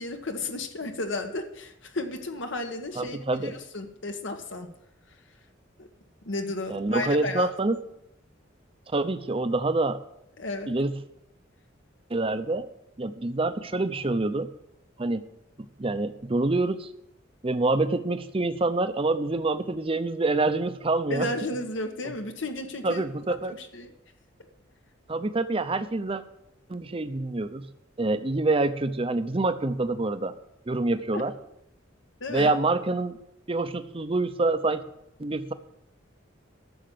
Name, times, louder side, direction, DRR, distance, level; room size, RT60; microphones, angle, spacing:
voice 1, 0.0-4.7 5.8-5.9 6.2-7.5 10.4-10.7 21.1-23.0 23.6-23.9 31.1-31.2 32.2-32.5, left 2 dB, 75° left, 5 dB, 1.3 m, -33 dB
voice 2, 2.9-3.5 6.7-7.8 8.9-10.0 10.7-10.9 12.1-12.7 13.0-14.5 15.0-15.2 15.8-16.9 17.4-21.3 22.8-23.6 25.1-26.2 26.7-27.7 28.0-30.3 30.7-31.3 32.3-33.2 33.5-34.8 35.2-35.5, right 2 dB, 30° right, 11 dB, 0.7 m, -26 dB
11.5 x 7.2 x 6.8 m, 0.80 s
head